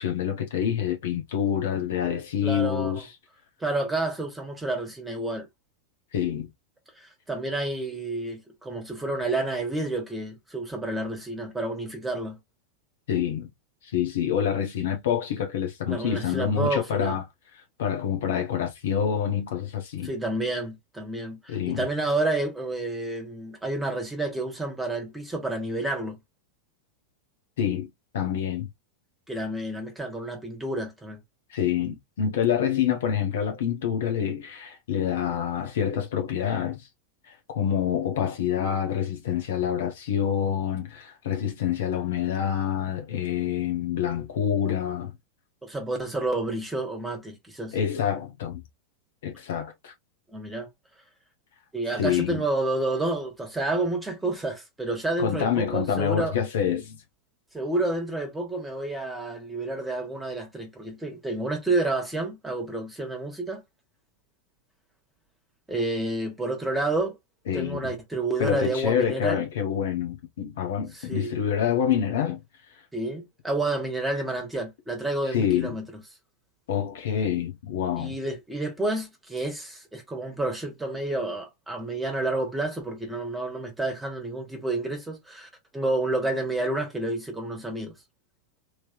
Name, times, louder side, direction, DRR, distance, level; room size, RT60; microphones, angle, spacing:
voice 1, 0.0-3.1 6.1-6.5 13.1-13.5 13.8-17.2 17.8-20.1 21.5-21.8 27.6-27.9 28.1-28.7 31.5-36.9 37.5-45.1 47.7-48.6 49.2-49.9 52.0-52.4 55.2-57.0 67.5-67.9 68.4-72.4 75.3-75.7 76.7-78.1, left 9 dB, 60° left, 1.1 m, -27 dB
voice 2, 2.4-3.0 3.6-5.5 7.0-12.4 15.9-17.2 20.0-26.2 29.3-31.2 45.6-47.8 50.3-50.7 51.7-56.3 57.5-63.6 65.7-67.1 67.5-69.4 70.9-71.3 72.9-76.0 78.0-87.9, right 2 dB, 10° right, 1.5 m, -30 dB
3.2 x 3.1 x 2.7 m
figure-of-eight pair, 90°, 0 cm